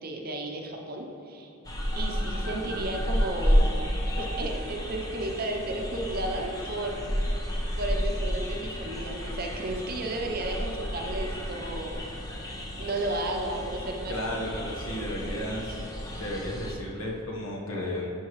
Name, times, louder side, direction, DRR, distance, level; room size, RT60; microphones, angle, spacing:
voice 1, 0.0-1.5 2.0-3.7 4.2-7.1 7.8-12.0 12.8-14.1 14.9-15.4, right 2 dB, 45° right, 1 dB, 0.7 m, -33 dB
sound 1, 1.6-16.7, equal, 15° left, 0.6 m, -31 dB
voice 2, 14.1-15.8 16.1-18.1, left 1 dB, 70° left, -2 dB, 1.1 m, -33 dB
11.0 x 4.6 x 3.1 m, 3.0 s
head